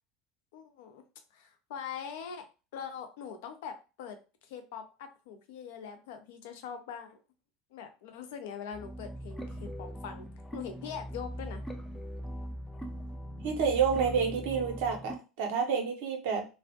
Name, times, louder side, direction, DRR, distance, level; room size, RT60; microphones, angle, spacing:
voice 1, 0.5-1.0 1.3-2.5 2.7-4.2 4.4-7.2 7.7-10.3 10.5-11.6, left 7 dB, 60° left, 7 dB, 0.4 m, -42 dB
sound 1, 8.7-15.2, equal, 10° left, 0.4 m, -40 dB
voice 2, 13.4-16.5, right 6 dB, 60° right, 3 dB, 0.6 m, -29 dB
2.3 x 2.0 x 2.6 m, 0.31 s
figure-of-eight pair, 70°, 0 cm